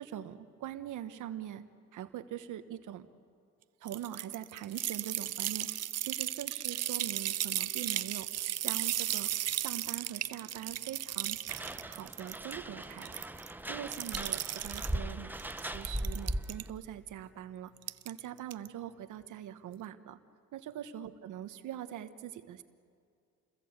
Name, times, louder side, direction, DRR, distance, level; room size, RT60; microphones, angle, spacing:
voice 1, 0.0-1.6 1.9-3.1 3.8-5.7 6.0-8.3 8.6-9.3 9.6-11.4 11.9-13.3 13.7-15.3 15.6-17.7 18.0-20.2 20.5-22.6, right 11 dB, 80° right, 10 dB, 1.3 m, -42 dB
sound 1, 3.9-12.5 12.8-13.5 13.9-14.9 15.4-16.6 17.8-18.2 18.5-18.7, right 12 dB, 55° right, 0.6 m, -35 dB
sound 2, 11.5-16.7, right 1 dB, 5° right, 0.9 m, -39 dB
29.0 x 21.5 x 8.2 m, 2.2 s
cardioid pair, 90°, 30 cm